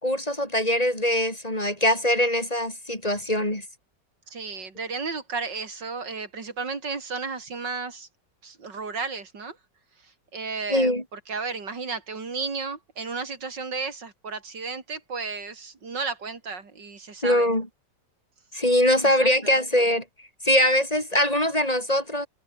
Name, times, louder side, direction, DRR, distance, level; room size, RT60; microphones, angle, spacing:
voice 1, 0.0-3.6 10.7-11.0 17.2-17.7 18.5-20.0 20.4-22.3, left 1 dB, 20° left, 5.4 m, -22 dB
voice 2, 4.3-8.1 8.4-9.6 10.3-17.5 19.0-19.5, right 4 dB, 80° right, 3.8 m, -33 dB
omnidirectional pair, 1.9 m